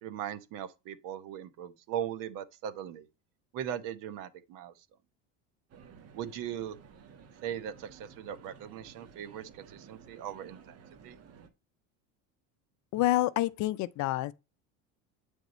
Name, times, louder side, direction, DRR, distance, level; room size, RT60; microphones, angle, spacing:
voice 1, 0.0-3.1 3.5-4.7 6.1-6.8 7.4-11.2, right 10 dB, 60° right, 1.1 m, -39 dB
sound 1, 5.7-11.5, right 6 dB, 40° right, 1.3 m, -54 dB
voice 2, 12.9-14.3, left 16 dB, 50° left, 0.6 m, -28 dB
9.1 x 3.6 x 4.1 m
supercardioid pair, 120°, 37 cm